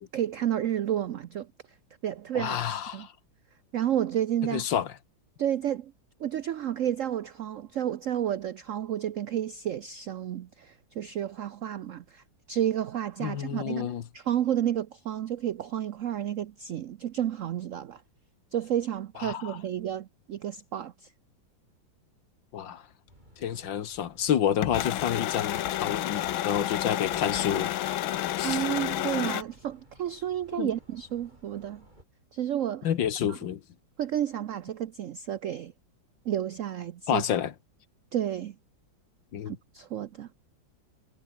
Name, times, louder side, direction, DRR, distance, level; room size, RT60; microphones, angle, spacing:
voice 1, 0.1-1.5 2.0-2.6 2.9-3.1 3.7-4.7 5.4-5.9 6.2-18.0 18.5-20.9 28.4-31.8 32.3-32.9 33.3-33.4 34.0-35.7 36.3-37.2 38.1-38.5 39.5-40.3, right 10 dB, 85° right, 0.6 m, -31 dB
voice 2, 2.3-3.1 4.5-4.9 13.2-14.0 19.2-19.6 22.5-22.8 23.4-27.7 28.4-28.6 30.6-30.7 32.8-33.6 37.1-37.5 39.3-39.6, left 9 dB, 70° left, 2.0 m, -29 dB
sound 1, 23.1-32.0, right 1 dB, 20° right, 7.2 m, -55 dB
sound 2, 24.6-29.4, left 13 dB, 85° left, 1.7 m, -30 dB
omnidirectional pair, 2.1 m